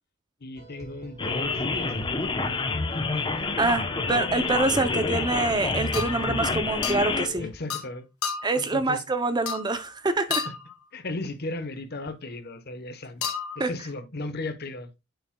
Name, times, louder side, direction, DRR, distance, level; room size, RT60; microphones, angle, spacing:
voice 1, 0.4-1.9 2.3-2.4 7.4-8.1 8.6-9.0 10.4-10.5 10.9-13.2 13.5-14.9, left 2 dB, 45° left, 1.1 m, -36 dB
sound 1, 0.6-7.5, left 2 dB, 65° right, 3.9 m, -43 dB
sound 2, 1.2-7.3, left 3 dB, 20° left, 0.8 m, -28 dB
voice 2, 3.6-7.4 8.4-10.5 13.6-13.7, right 2 dB, 20° right, 0.5 m, -26 dB
sound 3, 4.6-4.8 5.9-6.3 6.8-7.1 7.7-7.9 8.2-8.6 9.5-9.8 10.3-10.7 13.2-13.6, left 6 dB, 80° left, 1.4 m, -32 dB
9.6 x 6.9 x 2.2 m
head